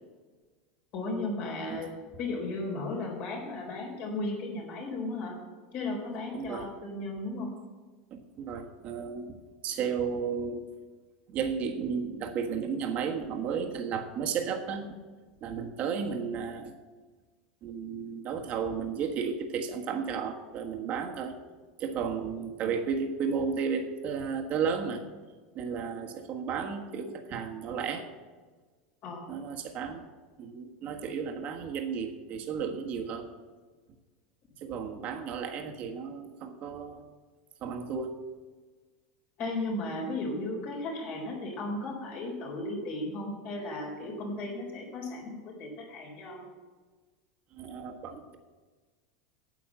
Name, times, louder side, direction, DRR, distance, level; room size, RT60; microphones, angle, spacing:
voice 1, 0.9-5.4 5.7-7.5 29.0-29.3 39.4-46.5, left 2 dB, 45° left, -1 dB, 4.1 m, -35 dB
voice 2, 6.3-6.6 8.1-9.3 9.6-10.6 11.3-15.0 15.4-16.7 17.6-21.3 21.8-25.0 25.5-28.0 29.3-30.1 30.4-33.3 34.6-37.1 37.6-38.2 47.5-48.4, right 6 dB, 35° right, 3 dB, 1.4 m, -33 dB
9.1 x 8.3 x 7.4 m, 1.4 s
supercardioid pair, 155°, 4 cm